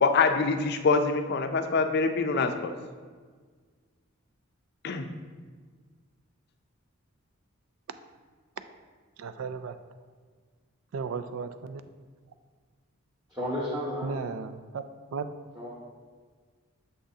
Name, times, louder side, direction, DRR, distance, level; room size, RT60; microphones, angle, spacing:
voice 1, 0.0-2.7 4.8-5.1, left 4 dB, 50° left, 7 dB, 0.4 m, -25 dB
voice 2, 9.2-9.8 10.9-11.8 14.0-14.8 15.1-15.3, right 5 dB, 70° right, 10 dB, 0.3 m, -35 dB
voice 3, 13.3-14.2 15.5-15.7, equal, 20° right, -8 dB, 1.1 m, -32 dB
6.9 x 6.2 x 2.7 m, 1.6 s
head